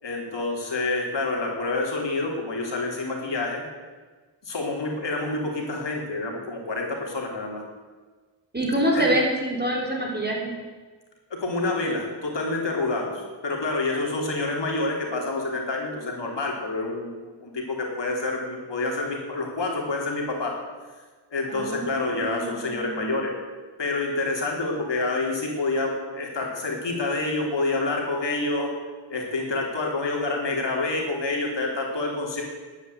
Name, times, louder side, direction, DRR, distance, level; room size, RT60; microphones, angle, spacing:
voice 1, 0.0-3.6 4.4-7.6 8.9-9.1 11.3-17.1 17.4-20.5 21.3-23.3 23.8-28.7 29.1-32.4, left 2 dB, 70° left, -1 dB, 3.5 m, -28 dB
voice 2, 8.5-10.5 21.5-23.2, right 1 dB, 20° right, -1 dB, 3.6 m, -26 dB
11.0 x 9.6 x 8.0 m, 1.4 s
wide cardioid pair, 80°, 45 cm